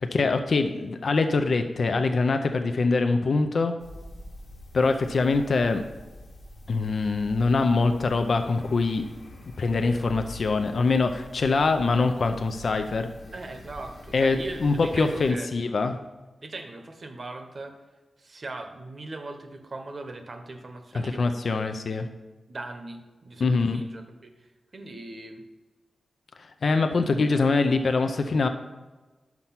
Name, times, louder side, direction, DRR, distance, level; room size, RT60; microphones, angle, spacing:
voice 1, 0.0-3.7 4.7-5.8 6.7-9.1 9.6-13.1 14.1-16.0 20.9-22.1 23.4-23.8 26.6-28.5, left 3 dB, 60° left, 7 dB, 0.5 m, -24 dB
sound 1, 3.8-15.3, left 1 dB, 90° left, 1.4 m, -45 dB
voice 2, 13.3-15.5 16.4-17.7 18.2-21.5 22.5-25.4 27.3-27.6, right 2 dB, 50° right, 5 dB, 0.9 m, -40 dB
5.9 x 5.4 x 5.8 m, 1.2 s
wide cardioid pair, 90°, 0 cm